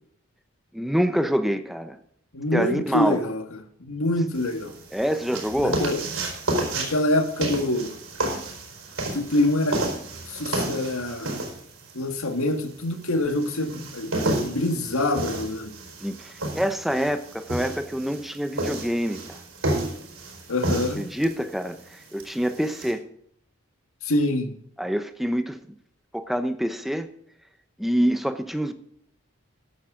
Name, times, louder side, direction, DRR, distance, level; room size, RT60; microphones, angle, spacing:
voice 1, 0.7-2.0 2.5-3.2 4.9-5.8 16.0-19.4 20.9-23.0 24.8-25.6 26.1-27.1 27.8-28.7, equal, ahead, 8 dB, 0.8 m, -26 dB
voice 2, 2.3-4.8 5.6-6.0 6.7-8.0 9.1-9.8 10.3-11.4 11.9-14.1 14.4-15.7 20.5-21.0 24.0-24.5, left 1 dB, 85° left, 6 dB, 1.8 m, -25 dB
sound 1, 4.4-22.9, right 1 dB, 75° right, 4.3 m, -31 dB
14.0 x 10.5 x 3.8 m, 0.65 s
head